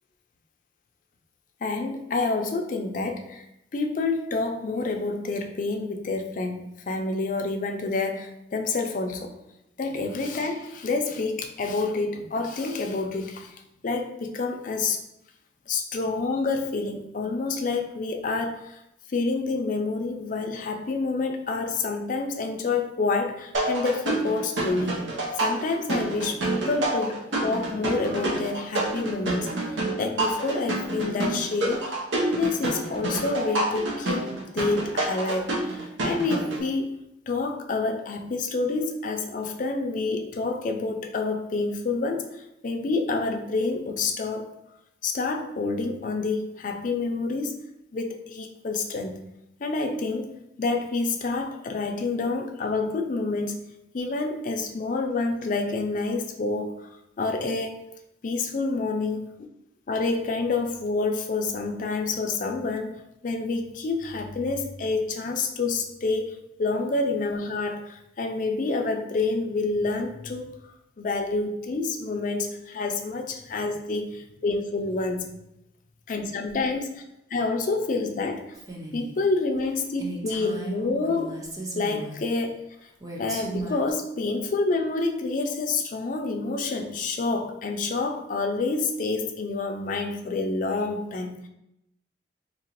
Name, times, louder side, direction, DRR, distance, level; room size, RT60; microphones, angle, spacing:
voice 1, 1.6-9.3 9.8-13.6 13.8-15.0 15.7-18.8 19.1-25.0 25.3-29.5 30.0-37.0 37.3-42.3 42.6-44.5 45.0-47.6 47.9-49.2 49.6-53.7 53.9-56.9 57.2-57.8 58.2-59.3 59.9-62.9 63.2-70.5 71.0-75.3 76.1-77.0 77.3-78.6 78.9-81.4 81.7-82.6 83.2-91.5, left 3 dB, 45° left, 4 dB, 0.4 m, -28 dB
sound 1, 23.5-36.6, right 2 dB, 80° right, 0.7 m, -28 dB
Female speech woman speaking, 78.5-79.2 79.6-79.7 80.0-82.3 83.0-83.9, right 2 dB, 20° right, 0.5 m, -36 dB
3.8 x 2.8 x 2.9 m, 0.83 s
head